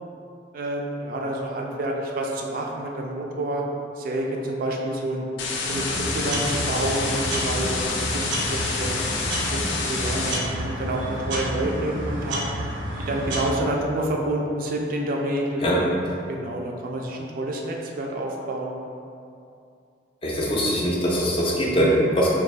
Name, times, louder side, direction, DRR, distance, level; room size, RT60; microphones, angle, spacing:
voice 1, 0.5-3.6 4.0-5.3 5.7-9.0 9.5-12.4 13.1-15.6 16.3-18.7 22.2-22.3, right 1 dB, 50° right, 0 dB, 0.3 m, -28 dB
sound 1, 5.4-10.4, left 4 dB, 85° left, 0.4 m, -28 dB
sound 2, 5.7-13.5, right 1 dB, 85° right, 0.6 m, -30 dB
voice 2, 20.2-22.3, equal, 30° left, -4 dB, 0.5 m, -22 dB
3.5 x 2.3 x 3.2 m, 2.5 s
head